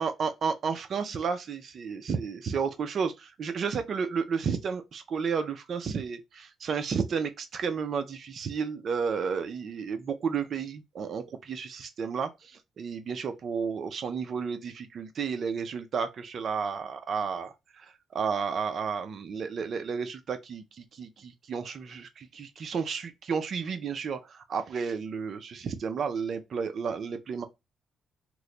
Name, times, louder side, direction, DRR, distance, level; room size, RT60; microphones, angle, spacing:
voice 1, 0.0-27.4, right 6 dB, 50° right, 0.4 m, -32 dB
3.0 x 2.1 x 3.7 m
cardioid pair, 105°, 0 cm